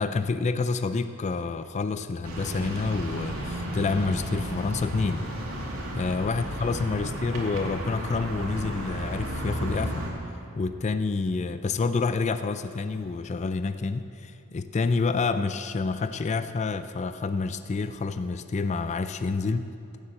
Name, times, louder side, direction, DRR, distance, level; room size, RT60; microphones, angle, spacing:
voice 1, 0.0-5.3 5.9-10.1 10.6-19.7, left 4 dB, 30° left, 11 dB, 0.3 m, -28 dB
sound 1, 2.2-10.1, right 1 dB, 75° right, 2.4 m, -33 dB
16.0 x 7.1 x 7.7 m, 2.7 s
head